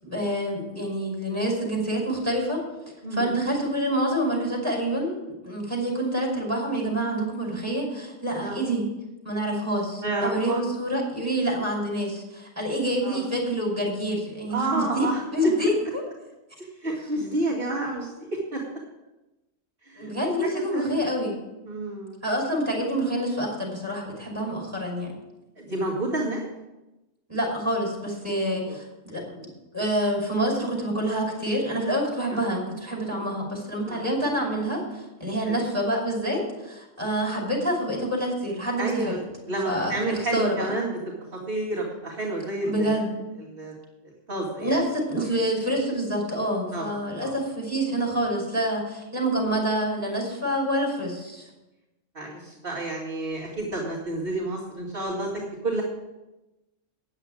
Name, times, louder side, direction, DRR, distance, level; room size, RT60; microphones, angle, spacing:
voice 1, 0.0-2.6 3.1-8.9 9.2-16.0 20.0-21.4 22.2-25.2 27.3-29.2 29.7-39.2 39.6-40.7 42.6-43.1 44.6-51.5, right 1 dB, 10° right, -3 dB, 5.3 m, -27 dB
voice 2, 10.0-10.6 13.0-13.2 14.5-15.2 16.6-18.6 19.8-20.1 20.7-21.0 21.6-22.2 25.6-26.4 28.4-28.7 29.2-29.4 32.3-32.4 33.8-34.0 35.4-35.7 38.8-39.2 39.5-41.0 41.3-43.0 43.4-43.7 44.3-44.8 45.2-45.3 46.7-47.3 52.1-55.3 55.6-55.8, right 2 dB, 45° right, -7 dB, 2.4 m, -30 dB
9.7 x 8.1 x 8.9 m, 1.0 s
omnidirectional pair, 1.3 m